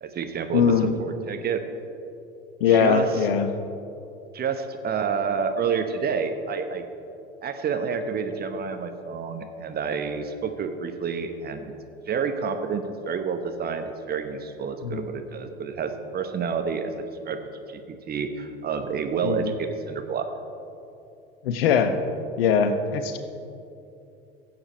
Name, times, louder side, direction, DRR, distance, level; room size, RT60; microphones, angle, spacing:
voice 1, 0.0-0.7 1.0-1.6 2.7-3.1 4.3-6.9 7.4-11.7 12.1-16.9 17.3-20.3, right 6 dB, 30° right, 7 dB, 1.1 m, -29 dB
voice 2, 0.5-0.9 2.6-3.5 14.8-15.0 19.2-19.5 21.4-22.0 22.4-23.2, left 7 dB, 70° left, 9 dB, 1.0 m, -21 dB
16.0 x 7.8 x 4.4 m, 2.7 s
hypercardioid pair, 80°, 30 cm